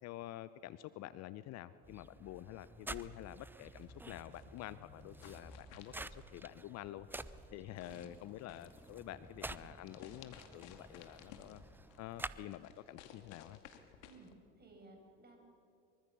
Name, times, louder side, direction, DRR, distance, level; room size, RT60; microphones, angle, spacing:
voice 1, 0.0-7.2 7.5-11.6 12.0-13.6, left 14 dB, 45° left, 16 dB, 0.7 m, -48 dB
sound 1, 1.8-12.5, right 2 dB, 5° right, 0.7 m, -50 dB
sound 2, 3.8-14.3, left 8 dB, 65° left, 2.5 m, -59 dB
voice 2, 7.8-8.1 14.0-14.3 14.6-15.4, right 3 dB, 25° right, 2 dB, 7.7 m, -58 dB
24.5 x 23.5 x 7.0 m, 2.6 s
hypercardioid pair, 80°, 38 cm